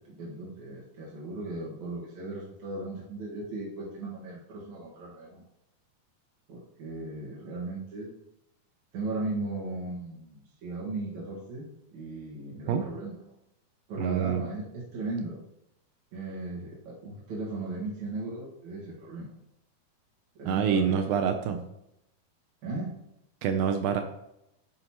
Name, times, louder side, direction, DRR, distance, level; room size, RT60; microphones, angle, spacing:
voice 1, 0.0-5.5 6.5-8.1 8.9-13.2 13.9-15.4 16.1-19.4 20.4-21.1 21.4-21.6 22.6-22.9, right 2 dB, 55° right, -6 dB, 2.5 m, -37 dB
voice 2, 14.0-14.4 20.5-21.6 23.4-24.0, right 7 dB, 80° right, 6 dB, 2.0 m, -26 dB
9.2 x 7.9 x 2.9 m, 0.82 s
omnidirectional pair, 4.6 m